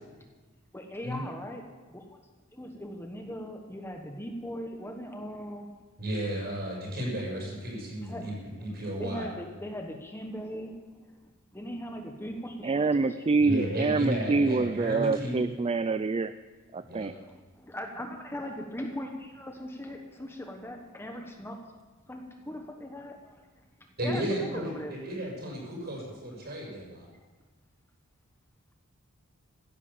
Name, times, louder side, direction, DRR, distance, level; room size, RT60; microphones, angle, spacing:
voice 1, 0.7-1.6 1.9-2.0 2.5-5.7 8.0-8.3 9.0-10.8 11.5-12.9 13.2-13.3 17.0-21.7 22.1-23.5 24.0-24.9, equal, 10° left, 3 dB, 1.2 m, -39 dB
voice 2, 6.0-8.3 8.6-9.3 13.4-15.5 16.8-17.1 24.0-27.1, equal, 50° right, -2 dB, 6.6 m, -33 dB
voice 3, 12.6-16.3 16.7-17.1, right 3 dB, 30° right, 12 dB, 0.4 m, -26 dB
16.0 x 11.0 x 7.1 m, 1.3 s
head